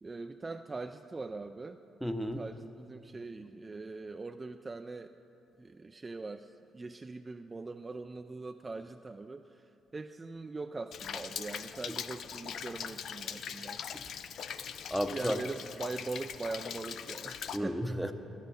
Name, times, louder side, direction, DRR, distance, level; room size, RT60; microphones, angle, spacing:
voice 1, 0.0-1.8 2.3-5.1 5.6-13.8 15.1-17.8, right 3 dB, 30° right, 7 dB, 0.3 m, -42 dB
voice 2, 2.0-2.4 13.9-14.0 14.6-15.4 17.5-18.1, equal, ahead, 7 dB, 0.7 m, -33 dB
Rain, 10.9-17.6, left 8 dB, 70° left, 0.4 m, -41 dB
12.0 x 9.8 x 4.2 m, 3.0 s
supercardioid pair, 70°, 0 cm